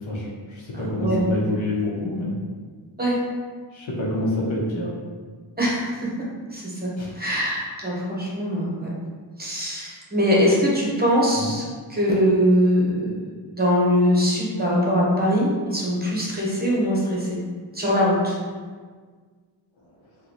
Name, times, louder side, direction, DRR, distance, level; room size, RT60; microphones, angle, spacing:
voice 1, 0.0-2.4 3.7-4.9 7.0-7.2 11.4-11.5, left 1 dB, 75° left, -3 dB, 0.9 m, -27 dB
voice 2, 0.7-1.2 3.0-3.2 5.6-5.9 6.5-8.9 9.4-17.4 17.7-18.4, equal, 20° right, -5 dB, 0.9 m, -22 dB
3.8 x 2.3 x 3.0 m, 1.5 s
wide cardioid pair, 75°, 47 cm